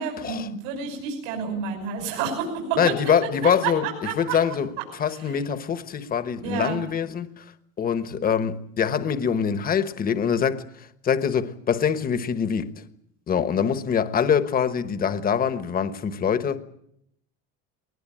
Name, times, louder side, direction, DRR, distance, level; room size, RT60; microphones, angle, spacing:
voice 1, 0.0-2.9 3.6-4.4 5.1-5.3 6.4-6.8, right 6 dB, 75° right, 5.9 m, -29 dB
voice 2, 2.8-3.8 4.2-4.7 5.0-7.4 7.8-10.6 11.0-12.7 13.3-16.6, left 7 dB, 20° left, 1.2 m, -24 dB
20.5 x 20.5 x 8.7 m
cardioid pair, 155°, 39 cm